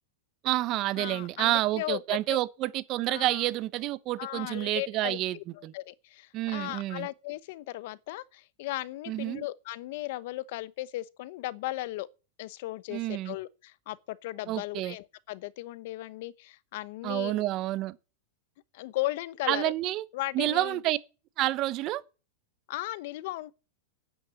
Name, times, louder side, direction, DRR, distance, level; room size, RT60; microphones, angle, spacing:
voice 1, 0.4-5.4 5.6-5.7 6.3-7.1 9.1-9.4 12.9-13.4 14.5-14.9 17.0-18.0 19.5-20.0 20.3-21.0 21.4-22.0, right 16 dB, 40° right, 0.9 m, -29 dB
voice 2, 1.0-2.4 3.1-3.5 4.2-5.2 5.6-12.1 12.4-17.4 18.7-19.7 20.1-20.8 22.7-23.5, left 17 dB, 60° left, 0.8 m, -36 dB
9.3 x 8.8 x 9.5 m
supercardioid pair, 140°, 0 cm